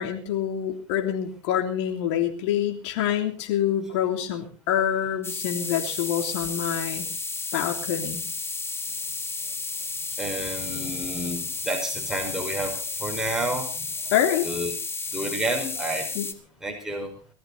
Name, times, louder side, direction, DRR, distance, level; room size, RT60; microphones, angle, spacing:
voice 1, 0.0-7.1 7.5-8.2 14.1-14.5 16.1-16.3, left 10 dB, 65° left, 3 dB, 3.2 m, -26 dB
sound 1, 5.2-16.3, left 3 dB, 15° left, 1.8 m, -32 dB
voice 2, 10.2-13.9 14.4-14.7 15.1-16.1 16.6-17.1, right 1 dB, 5° right, 0 dB, 5.2 m, -30 dB
20.0 x 14.0 x 4.1 m, 0.40 s
hypercardioid pair, 110°, 16 cm